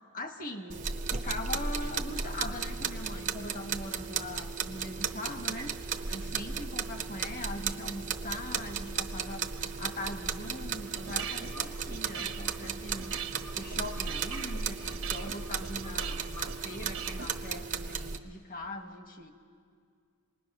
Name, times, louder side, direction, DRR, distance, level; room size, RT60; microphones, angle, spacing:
voice 1, 0.1-5.7 6.1-13.1 13.5-19.3, left 1 dB, 40° left, 5 dB, 1.4 m, -41 dB
sound 1, 0.7-18.2, right 5 dB, 35° right, 0.8 m, -35 dB
sound 2, 10.8-17.3, right 7 dB, 65° right, 1.2 m, -42 dB
27.0 x 20.5 x 6.1 m, 2.2 s
head